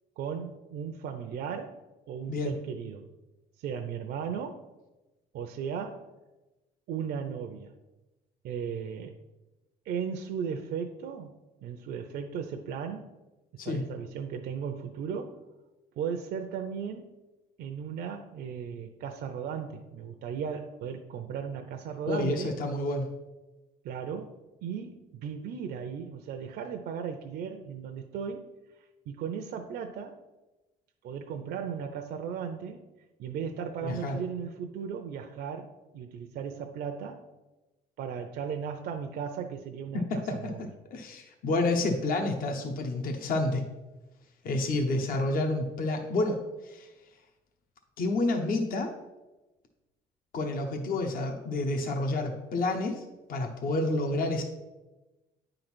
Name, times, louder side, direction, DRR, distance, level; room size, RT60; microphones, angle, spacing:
voice 1, 0.2-1.8 2.1-3.1 3.6-4.6 5.3-6.1 6.9-7.7 8.4-9.1 9.9-11.3 11.6-13.1 13.5-15.4 16.0-17.1 17.6-22.6 23.8-24.4 24.6-28.5 29.1-30.2 31.0-32.8 33.2-37.2 38.0-40.7, right 7 dB, 70° right, 4 dB, 0.6 m, -36 dB
voice 2, 22.1-23.1 33.8-34.2 39.9-40.5 40.9-43.6 44.4-46.9 48.0-48.9 50.3-53.0 53.3-54.4, left 2 dB, 55° left, 3 dB, 1.0 m, -29 dB
9.4 x 3.9 x 6.1 m, 1.1 s
cardioid pair, 110°, 17 cm